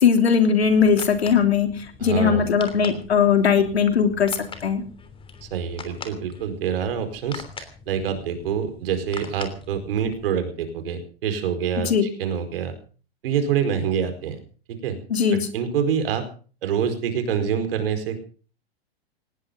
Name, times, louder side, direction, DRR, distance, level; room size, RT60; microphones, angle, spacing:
voice 1, 0.0-4.8 11.8-12.1 15.1-15.5, left 6 dB, 80° left, 7 dB, 3.2 m, -19 dB
sound 1, 0.6-10.3, left 5 dB, 15° left, 3.2 m, -42 dB
voice 2, 2.0-2.5 5.4-11.9 12.2-12.7 13.2-14.4 14.7-15.0 15.5-16.2 16.6-18.2, right 7 dB, 65° right, 9 dB, 4.7 m, -26 dB
18.5 x 18.5 x 3.8 m, 0.39 s
hypercardioid pair, 110°, 31 cm